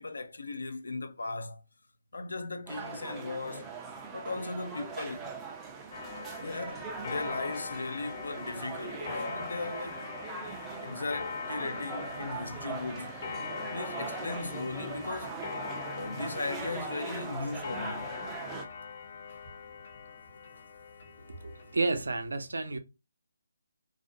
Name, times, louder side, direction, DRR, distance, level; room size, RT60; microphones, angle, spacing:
voice 1, 0.0-1.6 2.1-3.7 4.1-5.3 6.4-10.1 10.8-13.1 13.7-15.4 15.9-18.1 21.2-21.3, left 3 dB, 80° left, 0.5 m, -37 dB
sound 1, 2.7-18.7, right 5 dB, 15° right, 0.4 m, -41 dB
Clock, 5.9-22.0, left 5 dB, 45° left, 0.8 m, -42 dB
voice 2, 21.2-22.8, right 3 dB, 80° right, 0.5 m, -31 dB
2.4 x 2.1 x 2.5 m
figure-of-eight pair, 160°, 0 cm